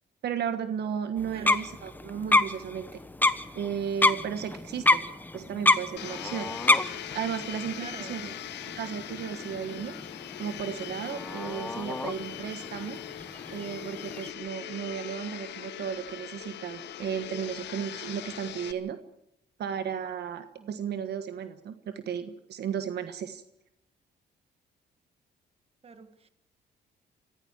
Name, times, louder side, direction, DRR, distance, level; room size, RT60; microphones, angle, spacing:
voice 1, 0.2-2.9 3.5-5.0 5.3-6.5 7.1-8.3 8.6-9.9 10.4-13.0 13.5-19.0 19.6-23.4, right 8 dB, 70° right, 9 dB, 1.4 m, -34 dB
sound 1, 1.2-14.3, left 2 dB, 10° left, 1.1 m, -29 dB
Domestic sounds home sounds, 6.0-18.7, left 11 dB, 80° left, 1.3 m, -41 dB
voice 2, 7.8-8.2 14.6-14.8 20.6-20.7 25.8-26.3, right 5 dB, 35° right, 10 dB, 1.7 m, -46 dB
26.0 x 15.5 x 7.4 m, 0.79 s
cardioid pair, 115°, 18 cm